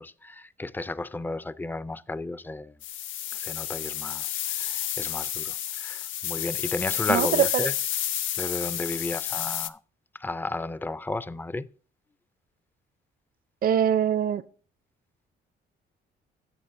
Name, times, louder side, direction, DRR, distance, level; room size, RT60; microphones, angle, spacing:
voice 1, 0.0-2.8 3.3-7.7 8.4-9.8 10.1-11.7, left 2 dB, 10° left, 0.3 m, -33 dB
sound 1, 2.8-9.7, left 11 dB, 80° left, 0.5 m, -30 dB
voice 2, 7.1-7.7 13.6-14.4, right 8 dB, 45° right, 0.5 m, -23 dB
16.0 x 6.7 x 2.5 m
cardioid pair, 90°, 20 cm